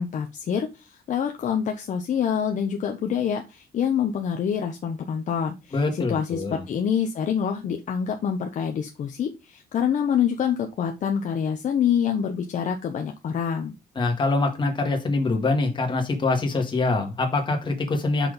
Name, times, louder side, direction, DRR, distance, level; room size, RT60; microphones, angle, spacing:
voice 1, 0.0-13.7, left 8 dB, 50° left, 0.9 m, -26 dB
voice 2, 5.7-6.6 14.0-18.3, left 3 dB, 30° left, 1.9 m, -24 dB
6.0 x 4.5 x 5.2 m
cardioid pair, 170°, 17 cm